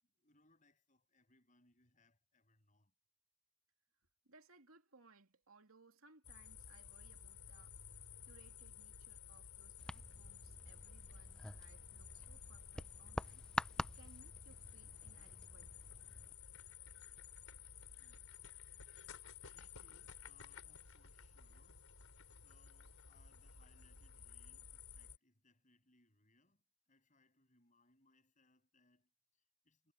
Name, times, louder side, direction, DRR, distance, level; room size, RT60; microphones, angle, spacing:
voice 1, 0.0-2.9 18.0-19.0 19.5-21.9 22.3-29.9, left 2 dB, 35° left, 7.6 m, -74 dB
voice 2, 4.2-7.8 8.2-13.4 13.8-15.8, right 3 dB, 75° right, 2.9 m, -66 dB
sound 1, 6.2-25.2, left 7 dB, 80° left, 4.3 m, -55 dB
sound 2, 9.8-16.3, left 1 dB, 5° left, 0.5 m, -47 dB
head